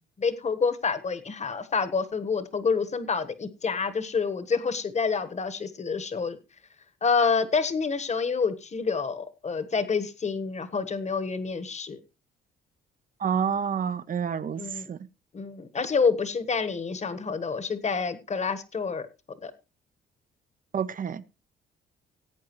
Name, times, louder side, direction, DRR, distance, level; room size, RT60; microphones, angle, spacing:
voice 1, 0.2-6.4 7.0-12.0 14.6-14.9 15.3-19.1 19.4-19.5, left 5 dB, 35° left, 1.3 m, -28 dB
voice 2, 13.2-15.0 20.7-21.2, right 7 dB, 45° right, 0.7 m, -28 dB
17.0 x 8.5 x 3.1 m
cardioid pair, 90°, 20 cm